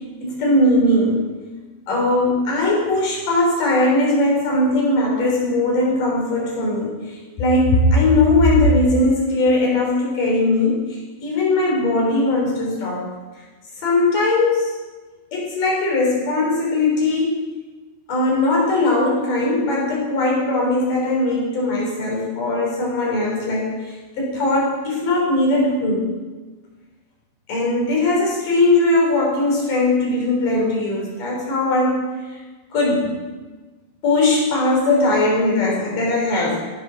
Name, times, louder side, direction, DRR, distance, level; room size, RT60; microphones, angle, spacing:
voice 1, 0.2-1.2 1.9-13.1 13.8-14.8 15.3-17.5 18.1-26.1 27.5-32.4 32.7-33.2 34.0-36.7, left 2 dB, 50° left, -3 dB, 5.0 m, -19 dB
14.0 x 8.3 x 6.3 m, 1.3 s
omnidirectional pair, 5.1 m